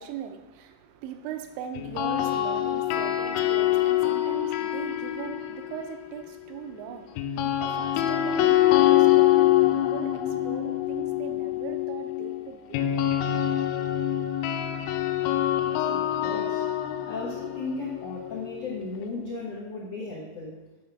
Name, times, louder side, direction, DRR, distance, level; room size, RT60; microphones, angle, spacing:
voice 1, 0.0-13.0 13.4-13.5, right 9 dB, 80° right, 2.4 m, -40 dB
sound 1, 1.8-5.9 7.2-19.0, left 13 dB, 90° left, 3.0 m, -25 dB
voice 2, 15.9-16.6 17.0-20.6, left 3 dB, 70° left, 1.5 m, -35 dB
11.0 x 3.8 x 5.7 m
omnidirectional pair, 5.3 m